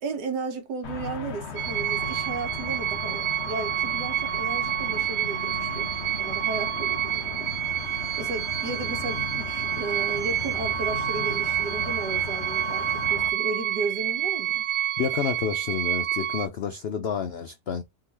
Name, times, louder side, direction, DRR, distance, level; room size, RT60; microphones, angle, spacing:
voice 1, 0.0-5.9 6.2-7.5 7.8-14.7, right 3 dB, 90° right, 1.7 m, -34 dB
sound 1, 0.8-13.3, left 5 dB, 55° left, 0.9 m, -37 dB
sound 2, 1.6-16.5, right 11 dB, 70° right, 0.9 m, -28 dB
Bowed string instrument, 7.5-13.1 13.5-13.6, left 7 dB, 20° left, 1.2 m, -46 dB
voice 2, 15.0-17.8, left 7 dB, 75° left, 0.5 m, -29 dB
3.8 x 3.0 x 4.2 m
omnidirectional pair, 1.7 m